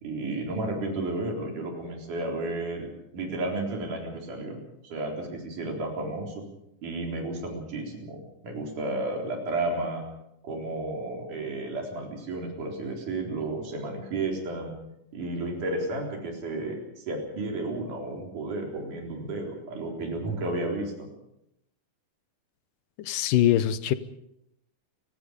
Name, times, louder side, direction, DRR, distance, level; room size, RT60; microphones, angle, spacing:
voice 1, 0.0-2.9 3.1-6.4 6.8-10.0 10.4-14.7 15.1-21.1, right 2 dB, 60° right, 1 dB, 5.5 m, -32 dB
voice 2, 23.0-24.0, left 12 dB, 75° left, 14 dB, 2.4 m, -23 dB
30.0 x 17.5 x 5.2 m, 0.83 s
omnidirectional pair, 4.1 m